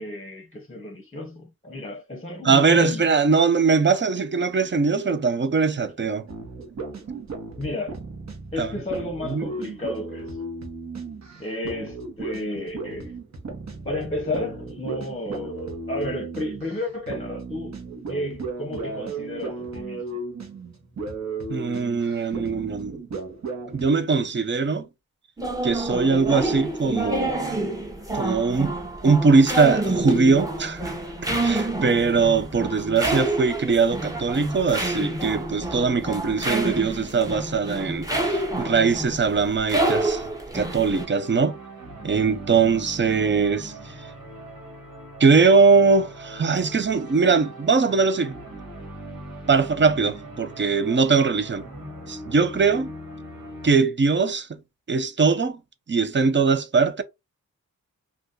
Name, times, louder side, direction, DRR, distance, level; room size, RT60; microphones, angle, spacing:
voice 1, 0.0-3.1 7.6-8.0 8.5-10.4 11.4-13.1 13.8-17.8 18.1-20.0, left 1 dB, 20° left, 0.8 m, -32 dB
voice 2, 2.4-6.3 8.6-8.7 9.3-9.5 21.5-23.0 23.7-24.9 25.6-27.6 28.1-28.8 29.0-30.9 31.4-40.3 40.5-41.6 42.0-44.1 45.2-48.4 49.5-51.6 52.1-52.9 53.6-54.6 54.9-55.6 55.9-57.0, right 4 dB, 35° right, 0.6 m, -21 dB
sound 1, 6.3-24.0, right 3 dB, 50° right, 1.0 m, -35 dB
sound 2, 25.4-41.1, right 1 dB, 10° right, 0.9 m, -28 dB
sound 3, 40.7-53.8, right 1 dB, 80° right, 1.4 m, -40 dB
2.5 x 2.3 x 3.7 m
cardioid pair, 65°, 34 cm